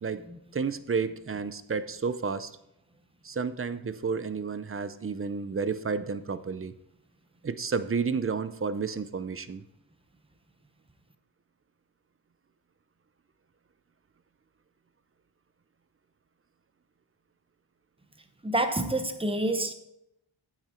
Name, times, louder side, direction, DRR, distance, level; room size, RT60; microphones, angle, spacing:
voice 1, 0.5-2.5 3.2-6.7 7.4-9.6, right 5 dB, 30° right, 13 dB, 0.6 m, -31 dB
voice 2, 18.4-19.7, right 1 dB, 10° right, 7 dB, 0.9 m, -28 dB
9.1 x 8.9 x 4.4 m, 0.82 s
wide cardioid pair, 125°, 47 cm